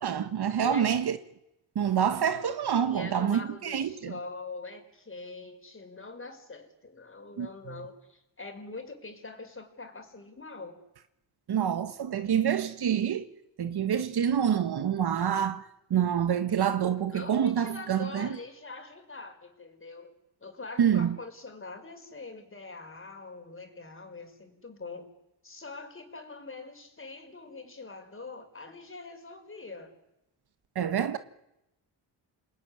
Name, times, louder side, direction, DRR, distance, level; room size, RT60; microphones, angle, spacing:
voice 1, 0.0-1.2 1.7-4.1 7.4-7.5 11.5-13.3 13.6-18.4 20.8-21.2 30.7-31.2, right 8 dB, 60° right, 1.5 m, -27 dB
voice 2, 0.5-1.0 2.7-10.8 17.1-20.1 20.4-25.1 25.4-29.9, left 3 dB, 30° left, 5.2 m, -43 dB
29.0 x 20.5 x 9.8 m
cardioid pair, 95°, 45 cm